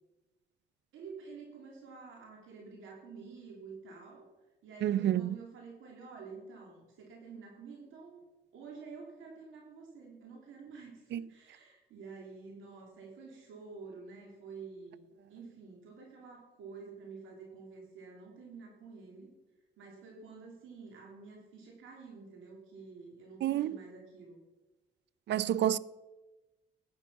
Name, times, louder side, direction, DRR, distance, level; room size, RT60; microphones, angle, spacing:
voice 1, 0.9-4.3 4.6-8.3 8.5-19.3 19.8-24.4, right 4 dB, 85° right, 3.1 m, -49 dB
voice 2, 4.8-5.4 11.1-11.2 23.4-23.8 25.3-25.8, right 11 dB, 60° right, 0.5 m, -29 dB
14.5 x 9.8 x 5.6 m
cardioid pair, 90°, 20 cm